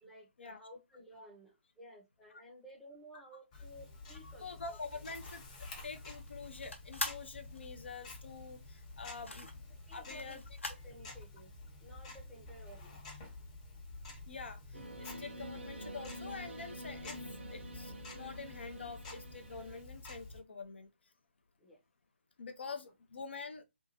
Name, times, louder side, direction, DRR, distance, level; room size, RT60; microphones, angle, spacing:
voice 1, 0.0-5.0 9.1-9.3 9.9-10.4 10.8-11.5 11.8-13.0 21.6-21.8, equal, 5° left, 0.6 m, -55 dB
Tick-tock, 3.5-20.4, left 2 dB, 30° left, 0.9 m, -50 dB
voice 2, 4.2-5.4 5.8-9.5 9.9-10.4 14.3-17.2 17.5-20.9 22.4-23.6, left 4 dB, 60° left, 0.5 m, -46 dB
sound 1, 4.6-10.9, left 2 dB, 80° left, 0.8 m, -45 dB
sound 2, 14.7-19.8, right 1 dB, 65° right, 0.7 m, -48 dB
2.7 x 2.3 x 2.7 m
figure-of-eight pair, 145°, 7 cm